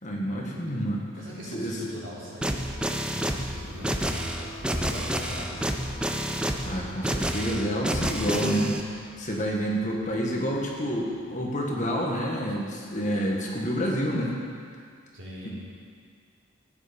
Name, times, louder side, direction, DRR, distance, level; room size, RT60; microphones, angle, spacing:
voice 1, 0.0-1.0 1.5-1.8 6.6-8.7 9.2-14.4, equal, 35° left, -2 dB, 1.7 m, -28 dB
voice 2, 1.2-5.8 15.1-15.5, equal, 60° right, -7 dB, 3.6 m, -41 dB
sound 1, 2.4-8.8, equal, 5° right, 0.5 m, -29 dB
sound 2, 2.5-12.5, left 1 dB, 55° left, 1.2 m, -46 dB
15.0 x 9.5 x 5.3 m, 2.1 s
head